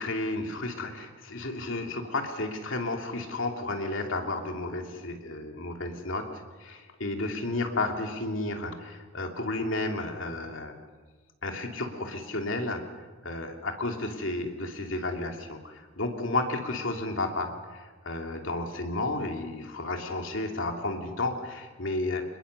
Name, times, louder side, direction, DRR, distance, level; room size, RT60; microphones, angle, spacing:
voice 1, 0.0-10.8 11.4-12.8 13.2-22.2, left 2 dB, 65° left, 3 dB, 2.9 m, -32 dB
27.0 x 21.0 x 6.9 m, 1.3 s
head